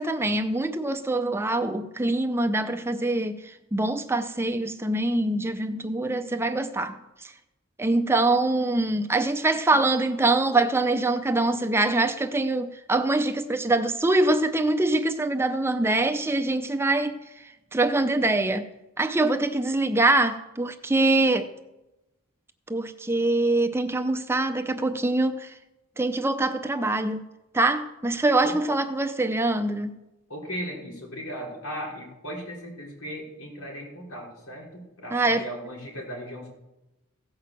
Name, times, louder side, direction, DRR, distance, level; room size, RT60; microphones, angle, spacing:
voice 1, 0.0-7.3 7.8-17.2 17.7-18.7 19.0-21.5 22.7-25.5 26.0-27.2 27.5-29.9 35.1-35.4, right 2 dB, 10° right, 0.5 m, -24 dB
voice 2, 30.3-36.5, equal, 85° left, 4.3 m, -37 dB
16.0 x 5.8 x 7.6 m
head